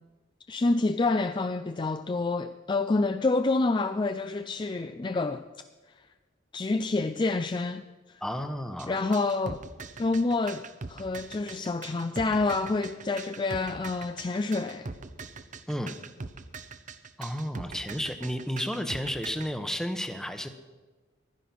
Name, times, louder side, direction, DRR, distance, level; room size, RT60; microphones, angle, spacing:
voice 1, 0.5-5.4 6.5-7.8 8.9-9.6 10.0-14.9, left 3 dB, 25° left, 0.4 m, -28 dB
voice 2, 8.2-8.9 15.7-16.0 17.2-20.5, equal, 5° left, 1.0 m, -32 dB
sound 1, 8.8-19.5, right 4 dB, 40° right, 0.7 m, -41 dB
15.5 x 11.0 x 6.0 m
head